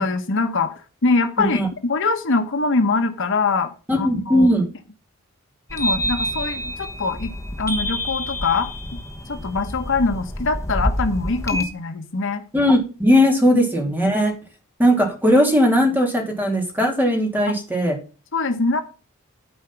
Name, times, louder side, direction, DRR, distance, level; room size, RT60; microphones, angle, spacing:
voice 1, 0.0-4.5 5.7-7.3 7.6-8.7 9.3-12.4 17.5-17.6 18.3-18.8, left 3 dB, 60° left, 8 dB, 1.0 m, -23 dB
voice 2, 3.9-4.6 12.5-14.3 14.8-18.0, equal, 10° right, 1 dB, 3.0 m, -18 dB
sound 1, 5.7-11.6, equal, 15° left, 1.2 m, -27 dB
12.0 x 5.0 x 5.7 m, 0.35 s
head